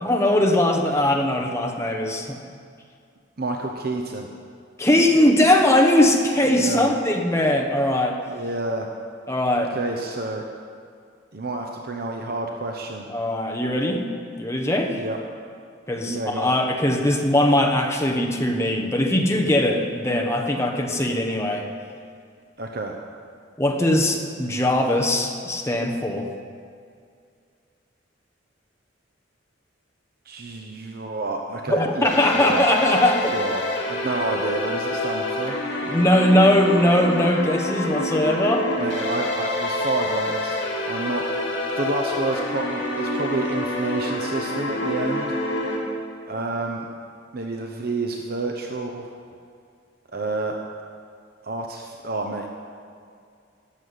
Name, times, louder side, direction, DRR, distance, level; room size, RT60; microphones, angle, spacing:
voice 1, 0.0-2.4 4.8-8.2 9.3-9.7 13.1-14.1 14.4-15.0 15.9-21.7 23.6-26.3 31.7-33.3 35.8-38.7, left 1 dB, 15° left, 2 dB, 1.1 m, -20 dB
voice 2, 3.4-4.3 6.5-6.9 8.3-8.9 9.7-10.5 11.3-13.0 15.0-15.2 16.0-16.5 22.6-22.9 30.2-32.9 33.3-35.5 38.8-40.6 40.8-41.2 41.8-45.3 46.3-46.9 47.3-49.1 50.1-50.6 51.4-52.5, right 2 dB, 50° right, 2 dB, 0.9 m, -29 dB
sound 1, 32.0-45.8, left 1 dB, 65° left, 3.2 m, -27 dB
14.0 x 7.0 x 9.7 m, 2.3 s
head